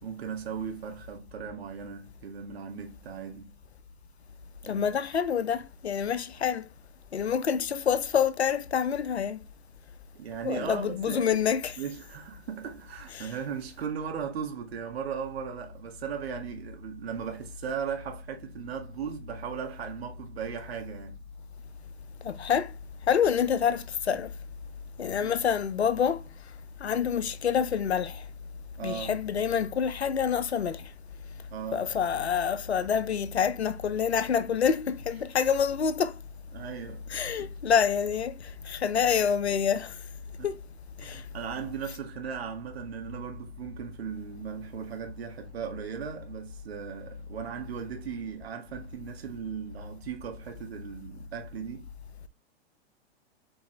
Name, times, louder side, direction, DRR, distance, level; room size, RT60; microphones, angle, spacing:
voice 1, 0.0-3.6 4.6-4.9 10.1-11.4 11.8-21.3 25.0-25.4 28.8-29.2 31.5-31.9 36.5-37.5 40.4-40.5 41.0-51.9, right 7 dB, 70° right, 2.0 m, -37 dB
voice 2, 4.7-6.7 7.1-9.4 10.4-11.8 13.2-13.3 22.2-22.7 23.1-24.3 25.0-26.2 26.8-28.2 28.8-30.9 31.7-36.1 37.1-39.9 40.4-40.5 41.0-41.2, left 7 dB, 85° left, 0.9 m, -27 dB
7.7 x 4.4 x 3.3 m
hypercardioid pair, 105°, 32 cm